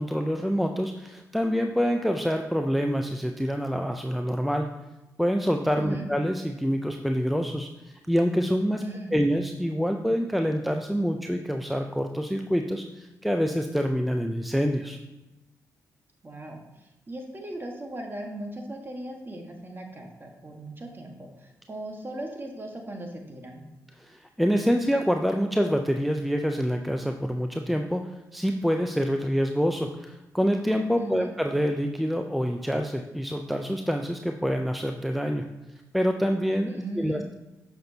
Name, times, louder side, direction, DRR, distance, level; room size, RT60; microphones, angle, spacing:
voice 1, 0.0-4.7 5.2-8.8 9.1-15.0 24.0-28.0 28.3-35.5 35.9-37.3, equal, ahead, 4 dB, 0.5 m, -26 dB
voice 2, 8.8-9.2 16.2-23.6 31.0-31.3 36.7-37.3, right 1 dB, 30° right, 2 dB, 1.4 m, -38 dB
6.4 x 6.0 x 2.8 m, 1.0 s
supercardioid pair, 50°, 7 cm